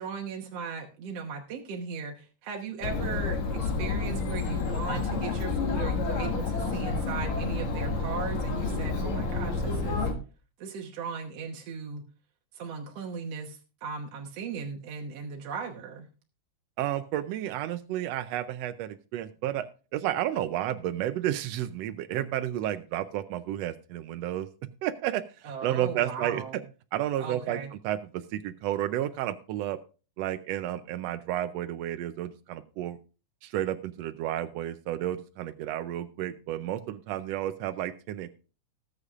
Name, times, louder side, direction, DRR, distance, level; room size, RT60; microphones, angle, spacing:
voice 1, 0.0-10.1 10.6-12.0 12.5-16.1 25.4-26.6 27.2-27.7, right 5 dB, 60° right, 2 dB, 2.0 m, -37 dB
Chatter, 2.8-10.1, left 4 dB, 65° left, 3.0 m, -29 dB
voice 2, 16.8-19.7 19.9-24.5 24.8-26.4 26.9-29.8 30.2-33.0 33.4-38.3, right 12 dB, 80° right, 10 dB, 1.5 m, -31 dB
19.0 x 8.2 x 2.5 m, 0.35 s
omnidirectional pair, 3.6 m